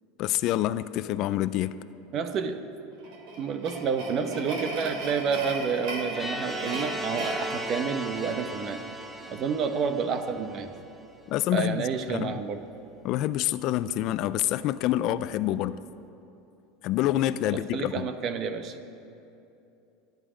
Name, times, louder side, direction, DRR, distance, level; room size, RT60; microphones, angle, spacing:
voice 1, 0.2-1.8 11.3-12.4 13.0-15.8 16.8-18.1, left 13 dB, 45° left, 15 dB, 0.4 m, -27 dB
voice 2, 2.1-2.7 3.4-8.8 9.3-10.7 11.5-12.6 17.4-18.8, right 6 dB, 35° right, 8 dB, 1.0 m, -29 dB
sound 1, 3.0-8.5, right 2 dB, 60° right, 2.9 m, -37 dB
sound 2, 6.1-10.9, equal, 5° right, 1.0 m, -37 dB
26.5 x 11.0 x 5.1 m, 2.8 s
supercardioid pair, 150°, 0 cm